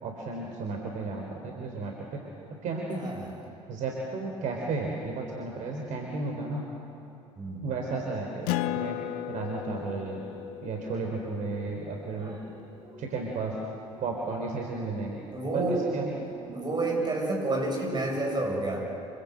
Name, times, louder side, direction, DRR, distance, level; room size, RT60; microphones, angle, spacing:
voice 1, 0.0-2.2 2.6-3.4 3.7-6.7 7.6-9.0 9.3-10.3 10.6-12.4 13.0-13.6 14.0-15.2 15.5-16.2, right 3 dB, 50° right, 0 dB, 3.8 m, -33 dB
voice 2, 3.0-3.3 7.4-7.6 12.2-12.3 12.6-13.0 15.3-15.9 16.5-18.9, right 2 dB, 25° right, 1 dB, 7.6 m, -30 dB
Acoustic guitar, 8.5-13.4, left 12 dB, 60° left, 0.9 m, -36 dB
27.5 x 24.0 x 7.8 m, 2.7 s
figure-of-eight pair, 55°, 17 cm